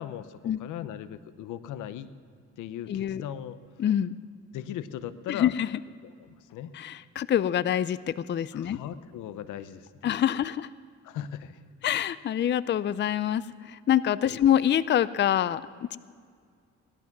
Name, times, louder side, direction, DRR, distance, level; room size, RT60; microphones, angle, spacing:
voice 1, 0.0-2.1 2.6-3.8 4.5-5.5 6.0-6.7 8.5-10.2 11.0-11.6 14.3-14.5, left 10 dB, 90° left, 14 dB, 0.8 m, -39 dB
voice 2, 2.9-3.2 3.8-4.2 5.3-5.7 6.7-8.8 10.0-10.7 11.8-16.0, left 10 dB, 40° left, 17 dB, 0.4 m, -26 dB
18.0 x 12.0 x 6.0 m, 2.1 s
cardioid pair, 90°, 30 cm